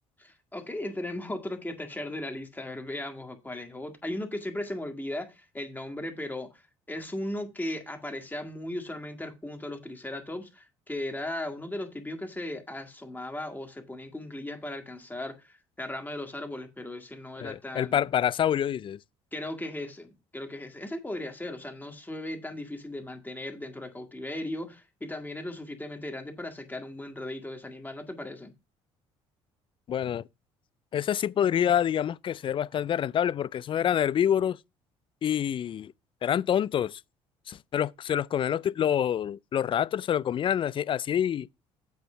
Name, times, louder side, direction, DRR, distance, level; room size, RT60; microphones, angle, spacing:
voice 1, 0.2-6.6 6.9-18.0 19.3-28.5, left 1 dB, 15° left, 1.9 m, -37 dB
voice 2, 17.4-19.0 29.9-30.2 30.9-34.6 35.2-35.9 36.2-37.0 37.5-41.5, left 9 dB, 40° left, 0.3 m, -27 dB
8.2 x 4.4 x 5.5 m
hypercardioid pair, 65°, 13 cm